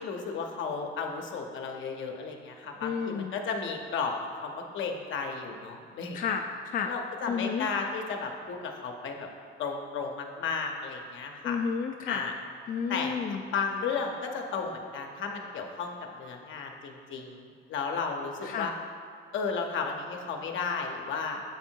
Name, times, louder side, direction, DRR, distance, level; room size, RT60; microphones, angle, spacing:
voice 1, 0.0-6.3 6.9-9.3 9.6-11.6 12.1-12.3 12.9-13.2 13.5-17.4 17.7-18.7 19.3-21.4, left 5 dB, 75° left, 3 dB, 0.8 m, -34 dB
voice 2, 2.8-3.3 6.1-6.9 7.3-7.7 11.4-12.2 12.7-13.4 18.4-18.7, left 6 dB, 45° left, 3 dB, 0.4 m, -31 dB
7.1 x 3.7 x 4.5 m, 2.3 s
cardioid pair, 90°, 20 cm